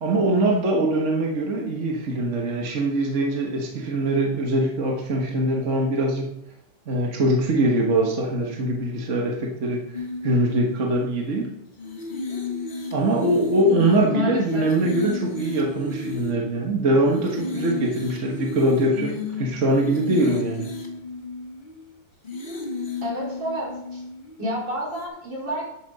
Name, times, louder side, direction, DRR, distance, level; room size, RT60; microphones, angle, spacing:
voice 1, 0.0-6.4 6.9-11.6 12.9-20.7, right 1 dB, 40° right, 0 dB, 1.4 m, -23 dB
sound 1, 9.9-11.4 11.8-16.7 17.0-21.9 22.2-24.5 24.9-25.1, left 4 dB, 30° left, 1.4 m, -33 dB
voice 2, 14.1-14.6 23.0-24.0 24.4-25.6, equal, 65° right, -6 dB, 4.9 m, -29 dB
12.0 x 8.3 x 4.0 m, 0.83 s
omnidirectional pair, 2.2 m